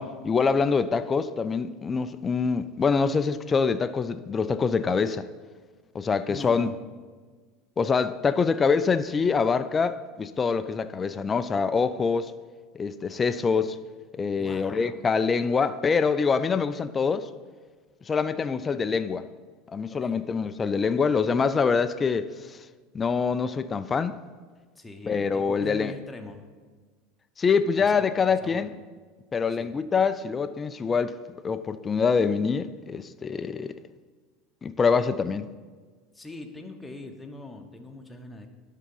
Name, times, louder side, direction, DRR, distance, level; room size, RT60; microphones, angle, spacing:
voice 1, 0.0-5.3 5.9-6.7 7.8-12.3 12.7-13.8 14.1-17.3 18.1-19.2 19.7-22.6 22.9-24.2 25.1-25.9 27.4-28.7 29.3-31.2 31.4-33.8 34.6-35.5, left 5 dB, 25° left, 0.3 m, -25 dB
voice 2, 6.3-6.8 14.3-15.0 19.9-20.2 24.7-26.4 27.8-28.1 28.4-28.7 29.5-29.7 36.1-38.5, left 2 dB, 10° left, 0.9 m, -41 dB
11.0 x 3.7 x 5.4 m
supercardioid pair, 105°, 0 cm